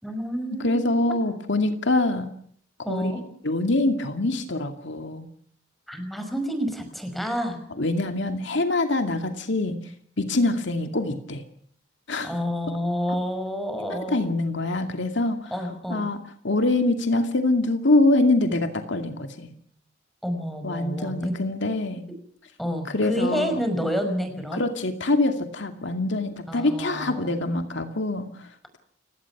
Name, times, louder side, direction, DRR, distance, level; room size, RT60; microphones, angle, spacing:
voice 1, 0.0-1.1 2.8-3.2 5.9-7.6 12.2-14.2 15.5-16.0 20.2-21.3 22.6-24.6 26.5-27.3, equal, ahead, 6 dB, 5.5 m, -29 dB
voice 2, 0.6-2.3 2.9-3.1 3.4-5.3 7.8-9.8 10.2-11.4 12.1-12.3 13.9-15.5 15.9-16.2 16.4-19.5 20.6-22.0 22.9-23.6 24.5-28.5, left 2 dB, 65° left, 6 dB, 2.4 m, -24 dB
29.5 x 17.5 x 6.1 m, 0.62 s
head